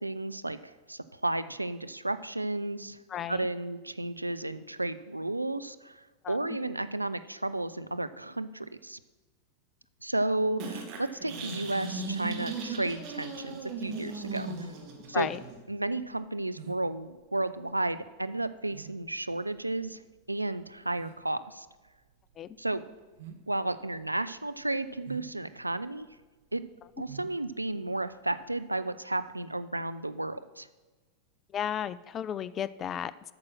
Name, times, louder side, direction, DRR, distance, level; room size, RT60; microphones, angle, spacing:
voice 1, 0.0-3.0 3.3-9.0 10.0-14.5 15.1-15.3 15.7-20.0 20.3-21.7 22.6-22.8 23.5-26.1 26.5-26.6 27.0-30.7, right 2 dB, 85° right, 12 dB, 0.3 m, -33 dB
voice 2, 3.1-3.5 6.2-6.4 15.1-15.4 22.4-22.6 31.5-33.3, left 9 dB, 25° left, 17 dB, 0.3 m, -34 dB
sound 1, 10.6-15.6, right 3 dB, 40° right, 1.6 m, -37 dB
sound 2, 12.7-28.6, right 9 dB, 55° right, 0.8 m, -51 dB
8.5 x 6.1 x 6.0 m, 1.2 s
figure-of-eight pair, 90°, 0 cm